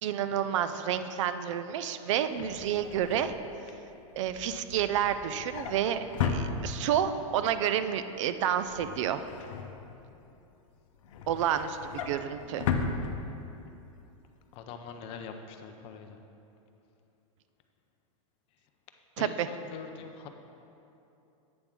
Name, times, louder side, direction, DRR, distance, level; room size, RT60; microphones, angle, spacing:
voice 1, 0.0-3.3 4.2-9.2 11.3-12.7 19.2-19.5, right 9 dB, 65° right, 11 dB, 0.4 m, -30 dB
Drawer open or close, 2.1-7.1 7.5-7.8 8.1-10.3 10.7-13.7 14.1-14.3 14.5-14.6, left 5 dB, 70° left, 0.7 m, -36 dB
voice 2, 14.5-16.2 19.2-20.3, left 6 dB, 35° left, 6 dB, 0.5 m, -43 dB
8.5 x 3.5 x 5.9 m, 2.8 s
supercardioid pair, 145°, 17 cm